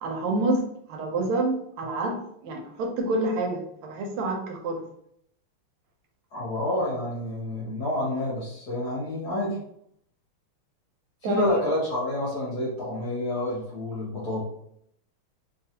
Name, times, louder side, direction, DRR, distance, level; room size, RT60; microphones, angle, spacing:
voice 1, 0.0-0.6 0.9-4.8 11.2-11.5, right 2 dB, 80° right, 2 dB, 1.5 m, -27 dB
voice 2, 6.3-9.6 11.2-14.4, left 1 dB, 55° left, -5 dB, 1.2 m, -29 dB
3.4 x 2.3 x 2.8 m, 0.71 s
omnidirectional pair, 2.4 m